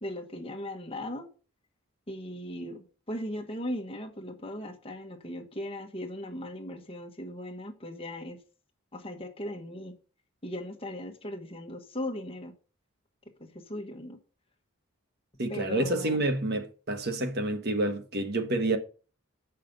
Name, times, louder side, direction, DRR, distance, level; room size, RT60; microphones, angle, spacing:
voice 1, 0.0-1.3 2.1-8.4 8.9-9.9 10.4-12.5 13.4-14.2 15.5-16.2, left 1 dB, 25° left, 1.3 m, -38 dB
voice 2, 15.4-18.8, right 1 dB, 50° right, 1.2 m, -28 dB
8.4 x 5.7 x 5.2 m
head